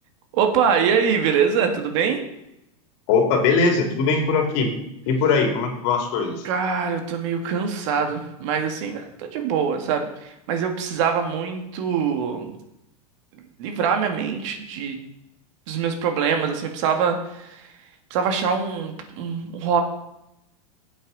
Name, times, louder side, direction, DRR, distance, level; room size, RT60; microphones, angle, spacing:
voice 1, 0.3-2.2 6.4-12.6 13.6-15.0 15.7-17.6 18.1-19.8, right 6 dB, 55° right, 5 dB, 2.0 m, -24 dB
voice 2, 3.1-4.7 5.1-6.4, left 4 dB, 50° left, 3 dB, 2.9 m, -20 dB
16.0 x 8.5 x 4.1 m, 0.85 s
supercardioid pair, 145°, 19 cm